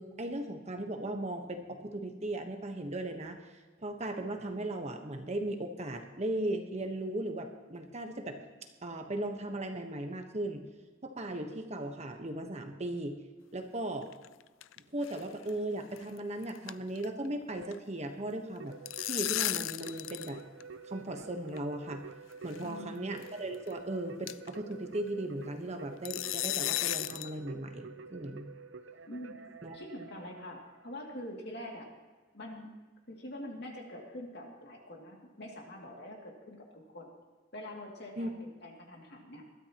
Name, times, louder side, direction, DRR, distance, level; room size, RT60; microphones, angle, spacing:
voice 1, 0.0-8.4 8.8-10.6 11.0-13.2 13.5-14.1 14.9-18.8 19.0-20.4 20.8-22.0 22.4-28.5 29.6-29.8 38.2-38.3, right 1 dB, 35° right, 5 dB, 1.2 m, -37 dB
sound 1, 14.0-14.8 15.0-15.2 15.5-15.6 16.0-16.2 16.4-17.3 17.5-17.8 18.6-20.3 20.6-20.7 21.6-21.7 22.5-22.7 23.2-23.3 23.7-23.8 24.3-24.6 26.1-27.3, left 15 dB, 85° left, 0.4 m, -34 dB
Keyboard (musical), 18.6-31.0, right 4 dB, 70° right, 0.7 m, -49 dB
voice 2, 22.6-23.1 29.1-29.3 29.7-31.9 32.3-32.7 33.1-37.1 37.5-39.4, left 1 dB, 55° left, 0 dB, 2.5 m, -45 dB
21.0 x 13.0 x 3.0 m, 1.3 s
head